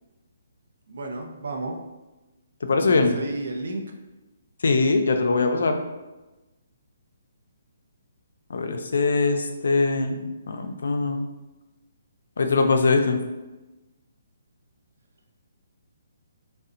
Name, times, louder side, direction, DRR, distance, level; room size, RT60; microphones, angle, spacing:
voice 1, 0.9-1.8 2.8-3.8, right 2 dB, 70° right, 1 dB, 0.5 m, -32 dB
voice 2, 2.6-3.1 4.6-5.8 8.5-10.2 10.5-11.3 12.4-13.2, left 3 dB, 75° left, 5 dB, 0.3 m, -22 dB
2.6 x 2.0 x 2.4 m, 1.1 s
hypercardioid pair, 150°, 0 cm